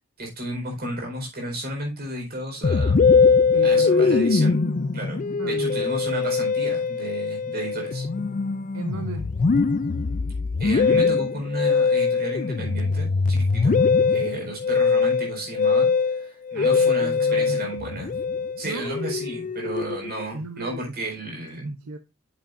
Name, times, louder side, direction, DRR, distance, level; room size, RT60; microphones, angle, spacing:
voice 1, 0.2-3.0 3.6-4.6 4.9-8.1 10.6-13.8 14.1-18.1 18.6-21.7, right 1 dB, 45° right, 4.4 m, -33 dB
Musical instrument, 2.6-20.2, left 5 dB, 40° left, 0.4 m, -22 dB
voice 2, 3.5-4.2 5.4-5.9 8.7-9.4 13.9-14.2 16.5-17.7 18.6-18.9 20.3-21.0 21.6-22.0, right 2 dB, 70° right, 0.7 m, -35 dB
8.9 x 7.5 x 2.6 m
head